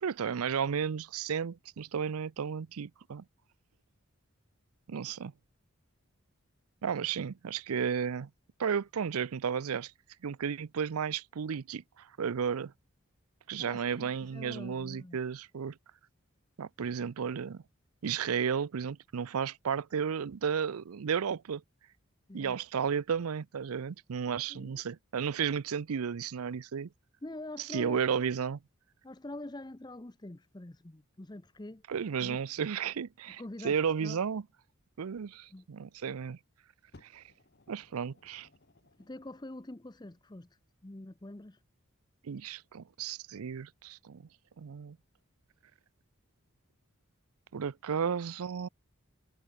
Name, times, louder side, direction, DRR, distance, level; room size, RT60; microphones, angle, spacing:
voice 1, 0.0-3.2 4.9-5.3 6.8-8.3 8.6-9.9 10.2-12.7 13.5-15.8 16.6-17.6 18.0-21.6 22.3-26.9 27.7-28.6 31.9-34.4 35.0-36.4 37.0-37.2 37.7-38.5 42.2-44.2 44.6-45.0 47.5-48.7, right 7 dB, 90° right, 0.5 m, -33 dB
voice 2, 13.6-15.2 22.3-22.6 24.5-24.8 27.2-28.2 29.0-31.8 32.2-32.4 33.4-34.2 35.5-35.7 39.0-41.6, left 1 dB, 20° left, 0.6 m, -45 dB
Fire, 36.9-39.7 40.6-40.7, left 2 dB, 50° left, 1.3 m, -61 dB
head